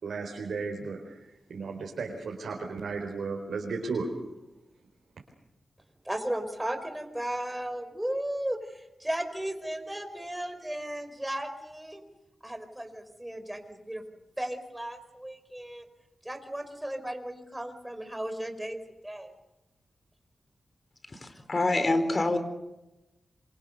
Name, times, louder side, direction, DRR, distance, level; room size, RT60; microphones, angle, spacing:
voice 1, 0.0-1.2 1.5-4.1, right 4 dB, 85° right, 0 dB, 4.3 m, -34 dB
voice 2, 6.0-12.0 12.4-14.0 14.4-15.8 16.2-18.8 19.0-19.3, right 1 dB, 10° right, 6 dB, 5.1 m, -35 dB
voice 3, 21.1-22.4, left 2 dB, 45° left, 9 dB, 4.4 m, -26 dB
27.5 x 25.5 x 6.8 m, 0.99 s
cardioid pair, 70°, 0 cm